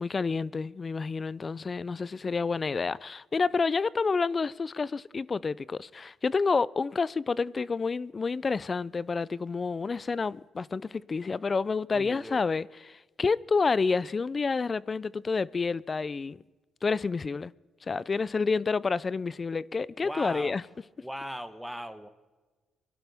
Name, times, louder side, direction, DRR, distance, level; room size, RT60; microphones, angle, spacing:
voice 1, 0.0-16.4 16.8-17.5 17.9-20.6, left 4 dB, 35° left, 0.4 m, -29 dB
voice 2, 11.9-12.4 20.0-20.6 21.0-22.1, equal, ahead, 1.0 m, -38 dB
23.5 x 12.0 x 3.5 m
cardioid pair, 90°, 0 cm